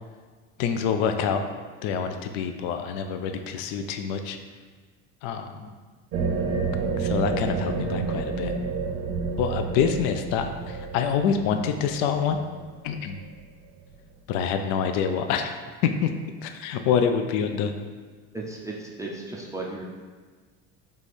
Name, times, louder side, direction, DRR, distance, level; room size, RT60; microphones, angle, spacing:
voice 1, 0.6-1.4 1.8-4.4 5.2-5.7 7.0-8.5 9.4-12.4 12.8-13.2 14.3-15.6 16.0-16.1 16.4-17.7, left 7 dB, 70° left, 7 dB, 0.5 m, -26 dB
sound 1, 6.1-13.4, right 4 dB, 50° right, 0.6 m, -30 dB
voice 2, 18.3-19.8, right 2 dB, 10° right, -3 dB, 0.4 m, -35 dB
3.5 x 3.3 x 4.1 m, 1.5 s
supercardioid pair, 125°, 35 cm